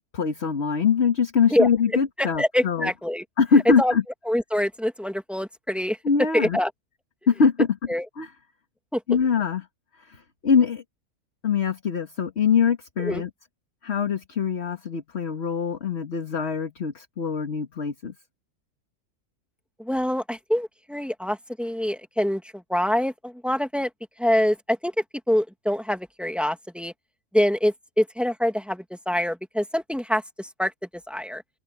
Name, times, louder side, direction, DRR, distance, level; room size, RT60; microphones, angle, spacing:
voice 1, 0.1-2.9 3.4-4.0 6.0-6.6 7.3-7.7 8.2-8.3 9.1-9.7 10.0-10.8 11.4-13.3 13.8-18.1, left 6 dB, 50° left, 1.8 m, -23 dB
voice 2, 2.2-3.2 3.8-3.9 4.3-6.0 6.3-6.7 7.9-8.1 8.9-9.0 13.0-13.2 19.8-23.9 24.2-24.9 25.3-26.9 27.3-30.7 31.1-31.4, equal, ahead, 1.9 m, -25 dB
open air
omnidirectional pair, 1.5 m